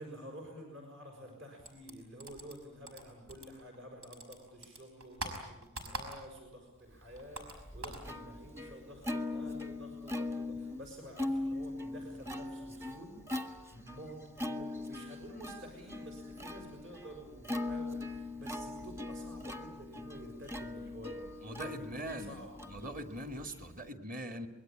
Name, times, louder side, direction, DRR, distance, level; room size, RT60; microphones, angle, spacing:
voice 1, 0.0-22.5, equal, 60° right, 2 dB, 6.3 m, -50 dB
sound 1, 1.6-3.8 4.0-6.5 6.8-8.1, right 2 dB, 90° right, 5.6 m, -44 dB
Plucked string instrument, 7.1-23.9, left 2 dB, 10° right, 1.0 m, -41 dB
voice 2, 21.4-22.4 22.7-24.5, equal, 40° right, 7 dB, 2.0 m, -41 dB
25.0 x 22.0 x 8.8 m, 0.95 s
head